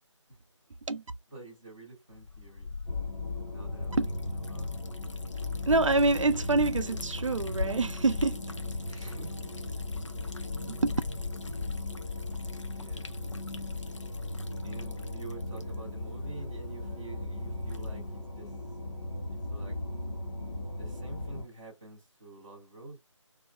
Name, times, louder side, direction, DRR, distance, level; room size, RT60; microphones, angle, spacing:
voice 1, 1.3-2.7 3.5-4.7 8.9-9.5 10.5-10.7 12.7-13.1 14.6-18.5 19.5-19.8 20.7-23.0, right 3 dB, 10° right, 0.5 m, -48 dB
Liquid, 2.1-18.2, left 4 dB, 70° left, 0.6 m, -40 dB
sound 1, 2.9-21.5, left 2 dB, 50° left, 1.0 m, -38 dB
voice 2, 5.7-8.4 10.7-11.0, right 3 dB, 75° right, 0.4 m, -26 dB
2.7 x 2.4 x 3.2 m
figure-of-eight pair, 160°, 16 cm